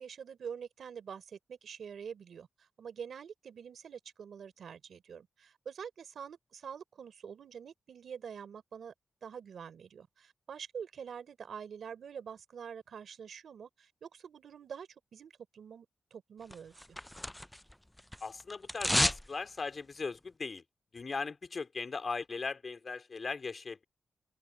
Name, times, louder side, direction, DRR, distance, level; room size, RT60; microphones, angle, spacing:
voice 1, 0.0-8.9 9.2-16.7, right 7 dB, 80° right, 3.7 m, -46 dB
sound 1, 16.5-17.7 18.0-19.3 19.6-19.7, left 1 dB, 5° left, 0.3 m, -31 dB
voice 2, 18.2-20.6 20.9-23.8, left 4 dB, 45° left, 2.9 m, -38 dB
open air
wide cardioid pair, 110°, 0 cm